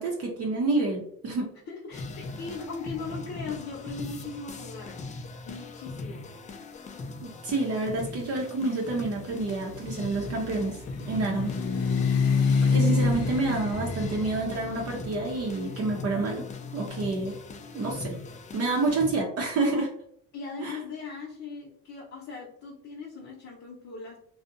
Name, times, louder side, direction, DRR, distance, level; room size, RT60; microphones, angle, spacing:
voice 1, 0.0-1.5 7.4-10.8 11.1-11.5 12.6-16.4 16.7-17.4 17.7-18.1 18.5-19.9 20.6-20.8, right 3 dB, 50° right, 0 dB, 0.6 m, -28 dB
voice 2, 1.7-5.1 5.4-6.3 20.3-24.2, left 4 dB, 45° left, -4 dB, 0.7 m, -39 dB
sound 1, 1.9-19.2, left 3 dB, 25° left, 0.3 m, -40 dB
sound 2, 9.2-17.2, left 4 dB, 85° left, 0.5 m, -28 dB
2.5 x 2.1 x 2.5 m, 0.66 s
supercardioid pair, 90°, 32 cm